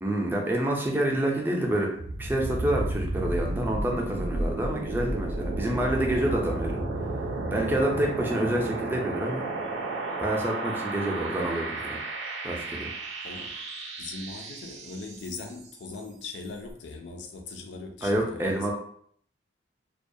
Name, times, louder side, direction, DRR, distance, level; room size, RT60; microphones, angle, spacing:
voice 1, 0.0-1.9 2.2-6.8 7.5-9.4 10.2-12.0 12.4-12.9 18.0-18.7, right 1 dB, 10° right, -1 dB, 0.4 m, -27 dB
sound 1, 1.9-15.8, right 2 dB, 75° right, 0.4 m, -33 dB
voice 2, 14.0-18.7, left 3 dB, 70° left, 3 dB, 0.4 m, -40 dB
2.2 x 2.1 x 2.6 m, 0.63 s
head